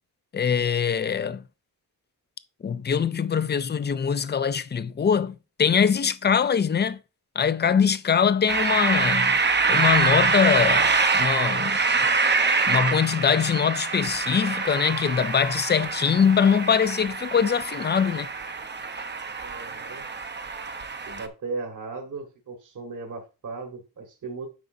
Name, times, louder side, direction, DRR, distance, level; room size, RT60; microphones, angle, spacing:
voice 1, 0.3-1.4 2.6-7.0 7.4-9.4 9.7-11.8 12.7-18.3, left 7 dB, 30° left, 0.3 m, -23 dB
sound 1, 8.5-21.3, right 4 dB, 25° right, 0.7 m, -25 dB
voice 2, 19.4-20.1 21.1-24.5, right 3 dB, 50° right, 1.4 m, -36 dB
9.5 x 6.8 x 2.6 m
wide cardioid pair, 160°, 39 cm